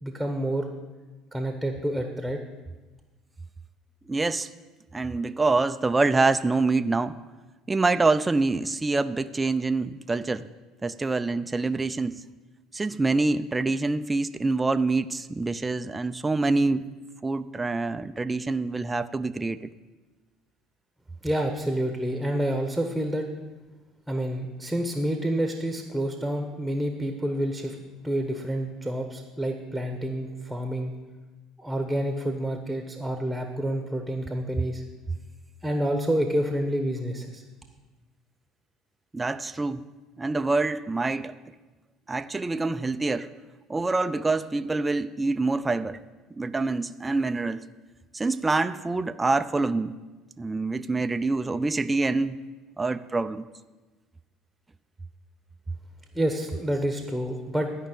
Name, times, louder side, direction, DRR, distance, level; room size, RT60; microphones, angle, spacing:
voice 1, 0.0-0.7 1.3-2.4 21.2-23.3 24.1-27.7 28.0-30.9 31.6-34.8 35.6-37.4 56.1-57.7, right 1 dB, ahead, 4 dB, 1.3 m, -28 dB
voice 2, 4.1-4.5 4.9-7.2 7.7-10.5 10.8-12.2 12.7-16.8 17.2-19.6 39.1-39.9 40.2-41.4 42.1-43.3 43.7-46.0 46.3-47.6 48.1-49.9 50.4-52.4 52.8-53.4, right 3 dB, 15° right, 10 dB, 0.5 m, -26 dB
12.5 x 5.5 x 9.2 m, 1.2 s
supercardioid pair, 100°, 0 cm